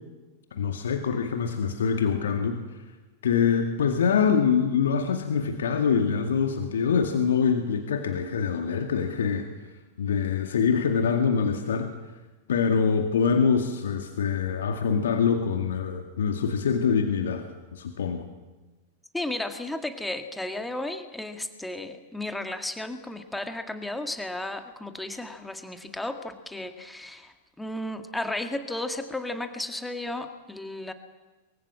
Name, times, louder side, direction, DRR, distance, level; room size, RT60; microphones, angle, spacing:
voice 1, 0.5-2.6 3.2-9.5 10.0-11.9 12.5-17.5 17.7-18.2, left 6 dB, 65° left, 5 dB, 2.1 m, -24 dB
voice 2, 19.1-30.9, left 1 dB, 5° left, 7 dB, 1.8 m, -34 dB
23.5 x 23.5 x 7.7 m, 1.2 s
figure-of-eight pair, 90°, 0 cm